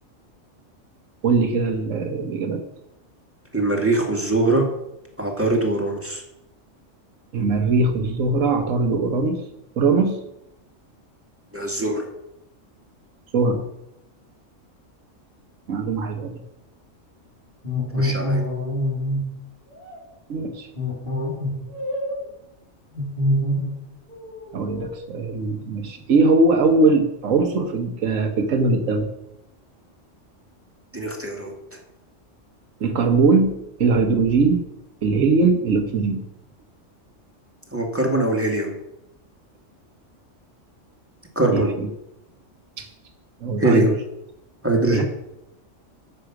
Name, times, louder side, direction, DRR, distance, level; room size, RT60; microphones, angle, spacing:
voice 1, 1.2-2.6 7.3-9.4 9.8-10.2 13.3-13.6 15.7-16.3 20.3-20.7 24.5-29.1 32.8-34.6 35.0-36.3 41.5-41.9 42.8-42.9 43.4-44.0 44.9-45.0, right 3 dB, 90° right, 5 dB, 1.4 m, -21 dB
voice 2, 3.5-4.7 5.2-6.2 11.5-12.1 17.9-18.4 30.9-31.8 37.7-38.7 41.4-41.7 43.6-43.9 44.6-45.0, right 2 dB, 10° right, 0 dB, 2.1 m, -22 dB
sound 1, 17.6-19.2 19.8-20.0 20.8-22.2 22.9-23.8 24.1-25.0, left 1 dB, 45° left, 3.4 m, -25 dB
9.9 x 7.6 x 6.0 m, 0.85 s
omnidirectional pair, 1.3 m